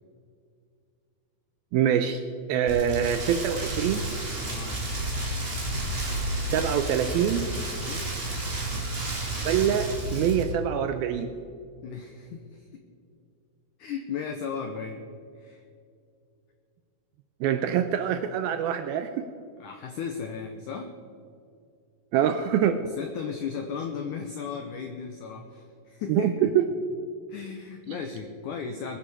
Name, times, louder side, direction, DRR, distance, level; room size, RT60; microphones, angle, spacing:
voice 1, 1.7-2.2 2.5-4.0 6.5-7.5 9.5-11.4 17.4-19.2 22.1-22.8 26.1-26.6, right 9 dB, 80° right, 8 dB, 2.2 m, -25 dB
Rain, 2.7-10.4, right 1 dB, 20° right, 1.7 m, -31 dB
voice 2, 4.5-4.8 7.7-8.1 11.8-12.7 13.8-15.0 15.3-15.6 19.6-21.0 23.0-26.5 27.3-29.0, left 6 dB, 85° left, 5 dB, 1.8 m, -36 dB
22.0 x 9.9 x 4.9 m, 2.4 s
omnidirectional pair, 4.9 m